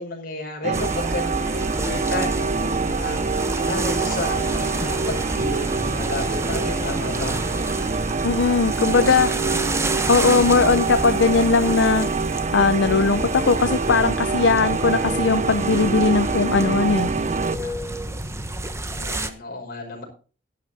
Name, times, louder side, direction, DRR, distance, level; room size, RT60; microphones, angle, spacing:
voice 1, 0.0-7.4 8.9-9.2 17.2-17.7 18.8-20.0, left 2 dB, 50° left, 0 dB, 5.2 m, -32 dB
sound 1, 0.6-17.6, right 4 dB, 40° right, 0.5 m, -25 dB
sound 2, 0.7-19.3, right 1 dB, 15° right, 1.0 m, -29 dB
voice 2, 8.2-9.3 10.1-12.1 12.5-17.1, left 4 dB, 70° left, 10 dB, 0.6 m, -19 dB
11.5 x 11.5 x 4.2 m, 0.38 s
head